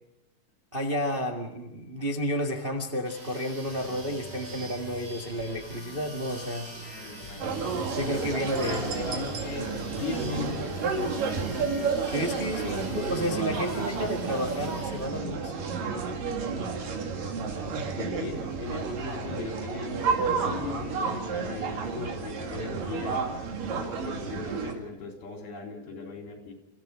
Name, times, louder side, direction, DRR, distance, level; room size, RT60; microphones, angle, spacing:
voice 1, 0.7-6.7 8.0-8.8 12.1-15.5, equal, 35° right, 1 dB, 0.9 m, -31 dB
sound 1, 3.1-15.1, right 2 dB, 50° right, 6.9 m, -47 dB
sound 2, 3.7-14.0, left 1 dB, 50° left, 6.4 m, -45 dB
voice 2, 6.8-7.5 8.6-11.1 12.5-14.2 17.9-23.3 23.7-26.5, left 3 dB, 80° left, 1 dB, 5.9 m, -38 dB
sound 3, 7.4-24.7, right 5 dB, 65° right, 3.9 m, -31 dB
29.0 x 15.5 x 6.1 m, 0.90 s
omnidirectional pair, 4.3 m